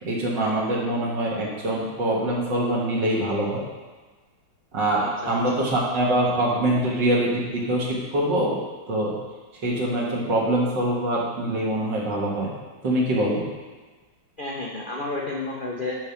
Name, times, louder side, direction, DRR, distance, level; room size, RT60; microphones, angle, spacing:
voice 1, 0.0-3.6 4.7-8.6 8.9-9.1 9.6-12.5 12.8-13.4, right 1 dB, 60° right, -4 dB, 2.2 m, -24 dB
voice 2, 5.0-5.6 14.4-16.0, left 2 dB, 50° left, -3 dB, 0.6 m, -31 dB
10.0 x 3.7 x 5.7 m, 1.3 s
omnidirectional pair, 2.3 m